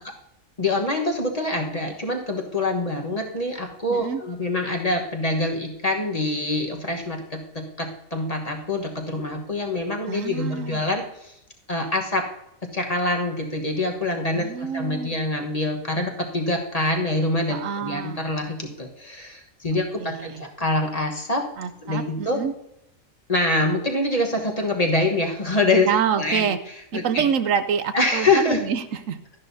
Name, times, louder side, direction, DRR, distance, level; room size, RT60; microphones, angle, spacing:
voice 1, 0.6-11.3 11.7-12.2 12.7-21.4 21.8-22.4 23.3-25.9 26.1-26.5 26.9-27.3 27.9-28.6, left 2 dB, 30° left, 2 dB, 1.2 m, -25 dB
voice 2, 3.9-4.2 10.1-10.8 14.3-15.2 17.5-18.2 19.7-20.4 21.6-22.5 25.8-26.6 26.9-29.2, right 7 dB, 70° right, 10 dB, 1.0 m, -27 dB
12.5 x 11.0 x 2.7 m, 0.85 s
omnidirectional pair, 1.4 m